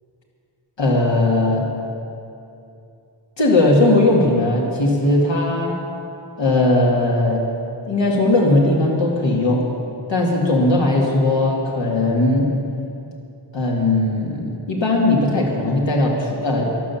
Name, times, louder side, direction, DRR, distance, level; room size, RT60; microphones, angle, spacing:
voice 1, 0.8-1.7 3.4-5.8 6.4-7.5 7.9-9.7 10.1-12.5 13.5-16.7, left 2 dB, 70° left, -2 dB, 2.3 m, -18 dB
13.0 x 11.0 x 7.1 m, 2.7 s
wide cardioid pair, 100°, 46 cm